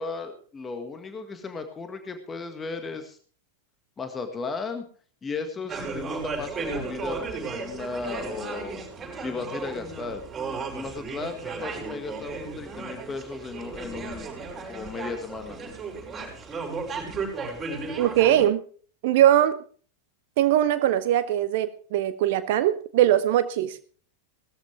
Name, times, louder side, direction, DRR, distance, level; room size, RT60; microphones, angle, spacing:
voice 1, 0.0-3.2 4.0-4.8 5.2-8.8 9.2-10.2 10.7-14.3 14.6-15.6, left 4 dB, 20° left, 7 dB, 1.8 m, -35 dB
sound 1, 5.7-18.4, right 4 dB, 20° right, 6.5 m, -35 dB
voice 2, 18.0-18.6 19.0-19.6 20.4-23.8, right 12 dB, 50° right, 11 dB, 1.0 m, -21 dB
18.5 x 13.5 x 3.4 m, 0.42 s
figure-of-eight pair, 90°, 0 cm